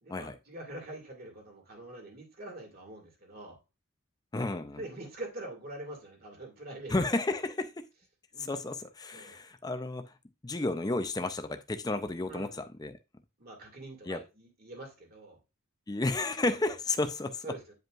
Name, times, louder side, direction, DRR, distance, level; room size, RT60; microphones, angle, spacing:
voice 1, 0.0-3.6 4.8-6.9 8.3-8.6 9.1-9.4 12.3-12.6 13.4-15.4 17.4-17.7, right 1 dB, 45° right, 2.3 m, -44 dB
voice 2, 4.3-4.8 6.9-7.9 8.4-10.1 10.4-13.0 14.0-14.2 15.9-17.5, left 2 dB, 20° left, 0.5 m, -32 dB
9.2 x 5.2 x 2.4 m
head